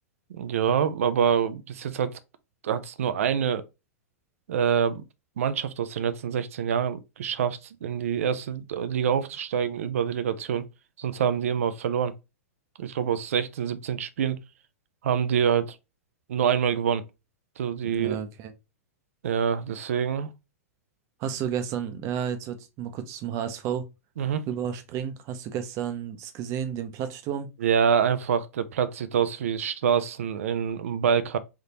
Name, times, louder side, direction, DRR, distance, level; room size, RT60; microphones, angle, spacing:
voice 1, 0.3-2.2 2.6-3.6 4.5-5.0 5.4-10.6 11.0-12.1 12.8-14.4 15.0-15.8 16.3-17.0 17.6-18.2 19.2-20.3 24.2-24.4 27.6-31.4, right 8 dB, 65° right, 0.6 m, -26 dB
voice 2, 17.8-18.5 21.2-23.9 24.5-27.5, right 8 dB, 40° right, 0.8 m, -32 dB
3.7 x 3.6 x 2.9 m
figure-of-eight pair, 100°, 8 cm